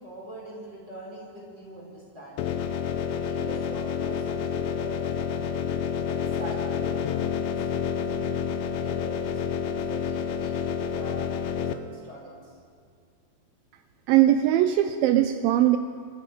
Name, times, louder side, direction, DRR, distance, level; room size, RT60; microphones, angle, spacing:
voice 1, 0.0-2.6 3.0-5.6 6.0-9.2 9.5-12.6, right 1 dB, 25° right, -5 dB, 5.3 m, -43 dB
sound 1, 2.4-11.7, left 7 dB, 80° left, 2.4 m, -29 dB
voice 2, 14.1-15.8, right 12 dB, 80° right, 9 dB, 2.2 m, -20 dB
26.5 x 14.0 x 3.8 m, 2.1 s
omnidirectional pair, 4.4 m